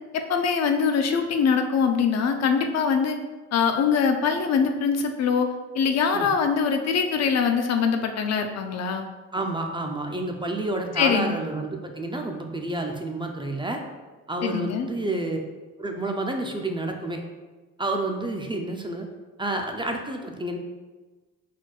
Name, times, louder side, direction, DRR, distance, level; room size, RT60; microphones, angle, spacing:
voice 1, 0.1-3.2 3.5-9.1 11.0-11.4 14.4-14.9, left 6 dB, 60° left, 5 dB, 0.5 m, -23 dB
voice 2, 9.3-13.8 14.3-15.4 15.8-17.2 17.8-19.1 19.4-20.6, right 2 dB, 15° right, 3 dB, 0.5 m, -29 dB
4.5 x 4.2 x 2.4 m, 1.2 s
cardioid pair, 90°, 30 cm